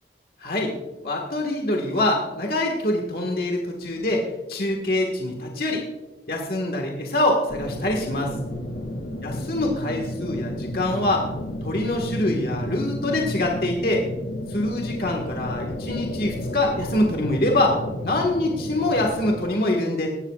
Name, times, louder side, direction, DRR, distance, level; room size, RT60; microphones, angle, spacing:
voice 1, 0.4-0.7 1.0-5.8 6.3-8.3 9.2-11.3 11.6-14.1 14.5-17.8 18.0-20.1, left 1 dB, 55° left, 1 dB, 1.6 m, -24 dB
sound 1, 7.5-19.4, left 1 dB, 85° left, 2.4 m, -32 dB
18.5 x 14.0 x 2.4 m, 1.2 s
head